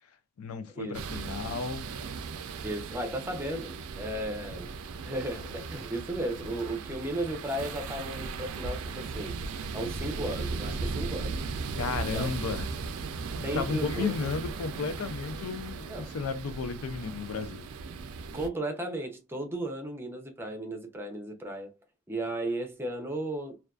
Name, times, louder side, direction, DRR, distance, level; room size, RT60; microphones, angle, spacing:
voice 1, 0.4-1.8 11.8-12.7 13.5-17.7, left 5 dB, 90° left, 0.4 m, -33 dB
sound 1, 0.9-18.5, right 4 dB, 85° right, 0.4 m, -37 dB
voice 2, 2.6-4.7 5.0-9.4 9.7-11.4 12.0-12.3 13.4-14.1 15.9-16.1 18.3-21.7 22.1-23.6, right 1 dB, 10° right, 0.5 m, -35 dB
2.4 x 2.3 x 2.2 m
head